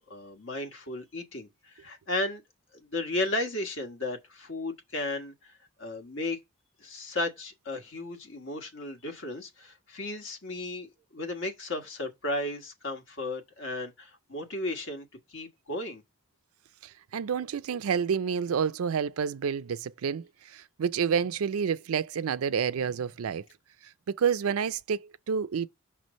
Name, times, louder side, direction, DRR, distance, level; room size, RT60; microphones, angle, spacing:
voice 1, 0.1-2.4 2.8-5.3 5.8-6.4 6.8-10.9 11.1-16.0, left 2 dB, 65° left, 1.4 m, -34 dB
voice 2, 17.1-23.4 24.2-25.7, right 7 dB, 85° right, 0.4 m, -29 dB
5.9 x 3.1 x 5.2 m
head